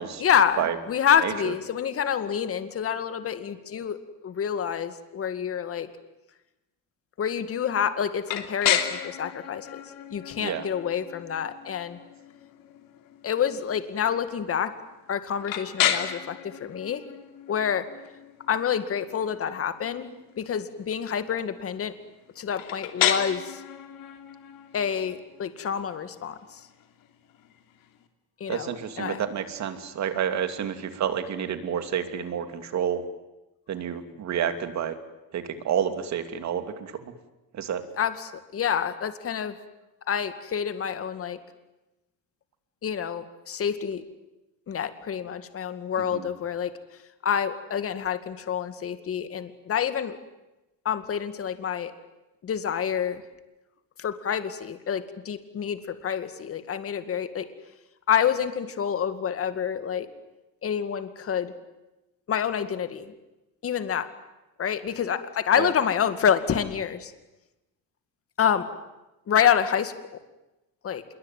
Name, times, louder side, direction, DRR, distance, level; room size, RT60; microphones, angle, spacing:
voice 1, 0.2-4.0 4.2-5.9 7.2-9.8 10.1-12.0 13.2-14.7 15.1-17.0 17.5-17.9 18.5-21.9 22.4-23.6 24.7-26.6 28.4-29.2 38.0-39.5 40.1-41.4 42.8-44.0 44.7-46.7 47.2-50.2 50.8-51.9 52.4-53.2 54.0-57.5 58.1-60.1 60.6-61.5 62.3-63.1 63.6-64.1 64.6-67.1 68.4-68.7 69.3-69.9 70.8-71.0, left 8 dB, 40° left, 10 dB, 2.2 m, -27 dB
voice 2, 1.2-1.5 10.4-10.7 28.5-33.0 33.7-35.0 35.3-37.1 37.5-37.8 46.0-46.3 65.6-65.7, right 8 dB, 50° right, 9 dB, 2.7 m, -29 dB
sound 1, 8.3-28.0, left 10 dB, 70° left, 3.1 m, -33 dB
27.0 x 22.5 x 9.4 m, 0.99 s
cardioid pair, 135°, 35 cm